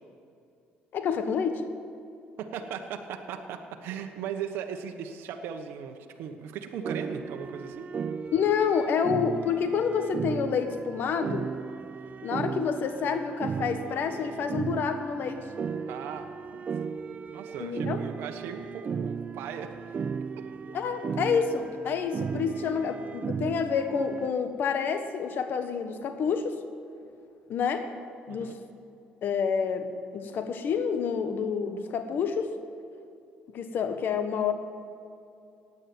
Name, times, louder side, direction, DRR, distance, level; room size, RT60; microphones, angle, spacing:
voice 1, 0.9-1.6 8.3-11.5 12.2-15.5 17.6-18.0 20.7-26.6 27.5-27.9 28.3-28.6 29.2-32.5 33.5-34.5, left 6 dB, 60° left, 8 dB, 1.5 m, -28 dB
voice 2, 2.4-7.9 15.9-16.6 17.3-20.0 20.4-20.5 28.3-28.6, right 7 dB, 75° right, 5 dB, 1.2 m, -38 dB
sound 1, 6.8-24.3, right 6 dB, 40° right, 0.5 m, -35 dB
16.0 x 9.8 x 7.8 m, 2.6 s
supercardioid pair, 80°, 4 cm